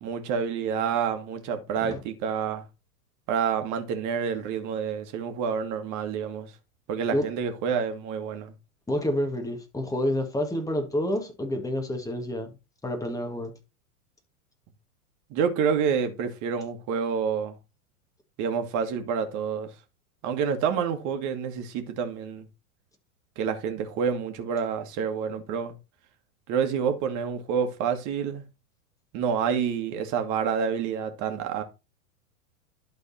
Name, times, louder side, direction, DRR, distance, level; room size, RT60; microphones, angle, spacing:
voice 1, 0.0-2.6 3.3-6.5 6.9-8.5 15.3-17.5 18.4-19.7 20.2-22.5 23.4-25.8 26.5-28.4 29.1-31.6, right 7 dB, 40° right, 1.8 m, -28 dB
voice 2, 8.9-12.5 12.8-13.5, left 1 dB, 5° left, 1.9 m, -28 dB
11.5 x 4.1 x 4.2 m
hypercardioid pair, 105°, 45 cm